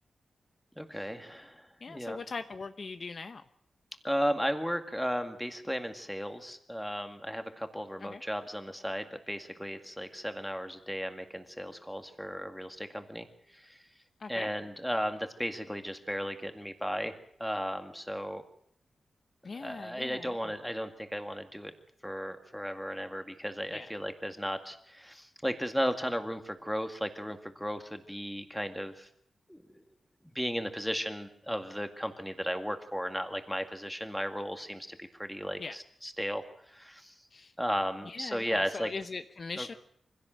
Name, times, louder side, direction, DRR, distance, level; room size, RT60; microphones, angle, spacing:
voice 1, 0.8-2.2 4.0-13.8 14.3-18.4 19.5-21.7 22.0-29.1 29.5-29.8 30.2-37.1 37.6-38.9 39.6-39.8, equal, ahead, 6 dB, 2.0 m, -35 dB
voice 2, 1.8-3.4 8.0-8.2 14.2-14.5 19.4-20.5 23.7-23.9 35.6-35.8 37.3-37.5 38.0-39.7, left 4 dB, 45° left, 9 dB, 0.9 m, -41 dB
24.5 x 16.5 x 7.6 m, 0.69 s
wide cardioid pair, 130°, 0 cm